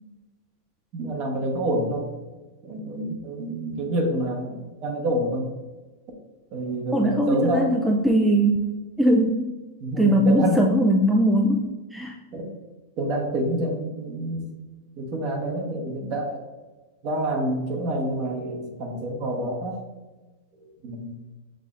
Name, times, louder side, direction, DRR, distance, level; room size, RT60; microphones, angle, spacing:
voice 1, 0.9-2.1 2.6-5.5 6.5-7.8 9.8-10.7 12.3-12.5 13.0-14.6 15.0-16.4 17.0-19.8 20.8-21.1, right 1 dB, 40° right, 1 dB, 1.1 m, -27 dB
voice 2, 6.9-8.6 9.0-9.4 10.0-11.6 11.9-12.1, right 1 dB, 5° right, 0 dB, 0.4 m, -20 dB
7.3 x 2.7 x 2.5 m, 1.2 s
hypercardioid pair, 130°, 0 cm